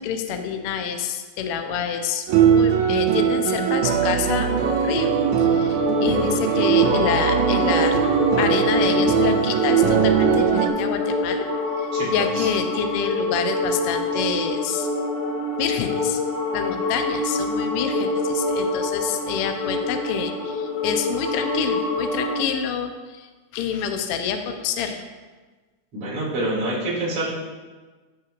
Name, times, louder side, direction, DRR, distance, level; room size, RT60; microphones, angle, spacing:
voice 1, 0.0-5.1 5.4-8.0 8.4-11.5 11.8-14.9 15.6-16.2 16.5-23.3 23.5-25.0, left 7 dB, 85° left, 6 dB, 1.2 m, -27 dB
Emotional Spiritual Soundtrack - Respect, 2.3-10.7, right 7 dB, 80° right, 2.0 m, -20 dB
sound 1, 4.8-22.4, left 2 dB, 45° left, 1.5 m, -26 dB
voice 2, 11.9-12.5 25.9-27.3, right 1 dB, 50° right, -7 dB, 3.3 m, -27 dB
13.5 x 5.8 x 2.5 m, 1.3 s
omnidirectional pair, 3.4 m